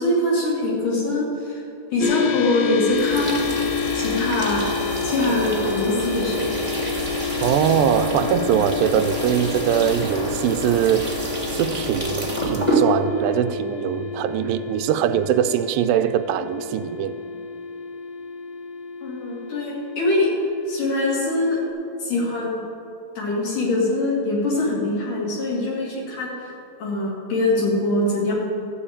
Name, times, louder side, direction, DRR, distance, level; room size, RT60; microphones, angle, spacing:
voice 1, 0.0-1.6 1.9-3.5 3.9-4.7 5.0-6.5 19.0-20.3 20.7-21.6 22.0-22.6 23.2-26.3 26.8-28.3, left 2 dB, 65° left, 4.1 m, -23 dB
sound 1, 2.0-21.7, left 7 dB, 90° left, 2.7 m, -29 dB
sound 2, 2.9-12.8, right 2 dB, 15° right, 1.2 m, -28 dB
voice 2, 7.4-17.2, right 10 dB, 85° right, 2.3 m, -22 dB
13.5 x 5.2 x 8.7 m
omnidirectional pair, 4.0 m